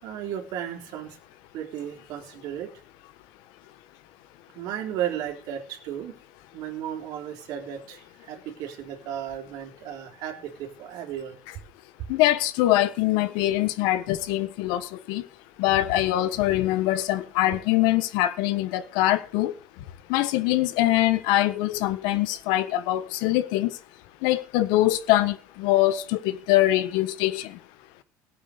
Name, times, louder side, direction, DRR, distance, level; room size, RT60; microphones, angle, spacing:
voice 1, 0.0-1.2 1.5-2.7 4.5-6.1 6.5-11.4, right 10 dB, 60° right, 3.6 m, -34 dB
voice 2, 12.1-15.2 15.6-19.5 20.1-23.7 24.2-27.5, left 15 dB, 75° left, 1.3 m, -23 dB
18.0 x 8.6 x 5.1 m
cardioid pair, 165°, 8 cm